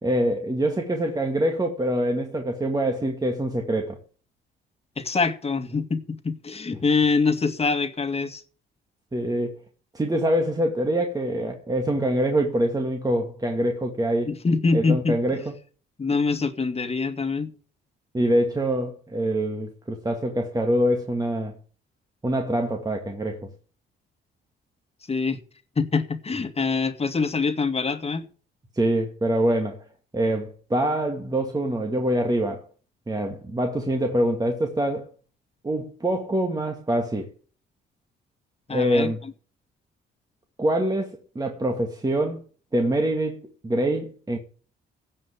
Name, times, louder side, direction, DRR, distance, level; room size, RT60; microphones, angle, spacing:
voice 1, 0.0-4.0 9.1-9.5 9.9-14.3 14.7-15.5 18.1-21.5 22.2-23.5 28.7-29.9 30.1-32.7 33.1-35.1 35.6-37.3 38.7-39.2 40.6-42.4 42.7-44.4, right 1 dB, 20° right, 2.2 m, -25 dB
voice 2, 5.0-8.4 14.3-15.2 16.0-17.5 25.1-25.4 25.8-28.3 38.7-39.1, left 4 dB, 30° left, 2.2 m, -24 dB
16.5 x 5.6 x 8.6 m
cardioid pair, 90°, 20 cm